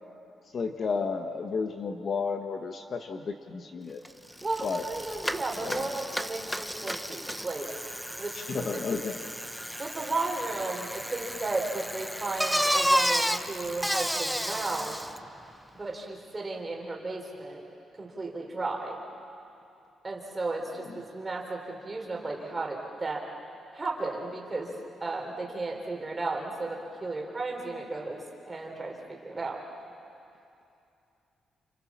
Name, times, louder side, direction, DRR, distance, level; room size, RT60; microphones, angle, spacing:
voice 1, 0.5-4.0 4.6-4.8 5.6-5.9 8.5-9.2, left 5 dB, 40° left, 5 dB, 1.1 m, -32 dB
Bicycle, 4.0-4.1 4.4-15.2, equal, ahead, 0.6 m, -32 dB
voice 2, 4.4-7.7 8.2-8.8 9.8-15.0 15.7-17.6 17.9-19.0 20.0-23.3 23.7-24.7 25.0-29.6, right 3 dB, 20° right, 0 dB, 3.6 m, -34 dB
29.0 x 28.0 x 7.3 m, 2.7 s
wide cardioid pair, 175°, 0 cm